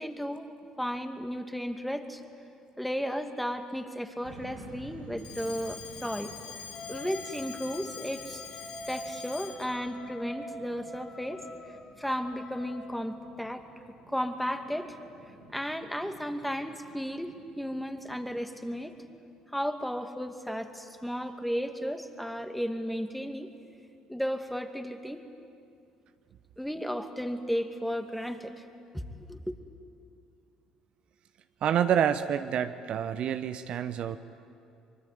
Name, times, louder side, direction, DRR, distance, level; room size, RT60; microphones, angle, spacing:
voice 1, 0.0-2.2 2.8-6.3 6.9-8.4 8.9-11.4 12.0-13.7 14.1-15.0 15.5-18.9 19.5-23.5 24.1-25.2 26.6-28.6 29.3-29.6, equal, ahead, 7 dB, 2.4 m, -34 dB
sound 1, 4.2-19.0, right 2 dB, 75° right, 5.1 m, -53 dB
Alarm, 5.2-9.8, left 7 dB, 55° left, 2.1 m, -45 dB
Wind instrument woodwind instrument, 6.7-13.3, left 1 dB, 35° left, 3.0 m, -46 dB
voice 2, 31.6-34.2, right 9 dB, 55° right, 10 dB, 0.9 m, -28 dB
25.0 x 23.0 x 9.5 m, 2.5 s
hypercardioid pair, 55°, 2 cm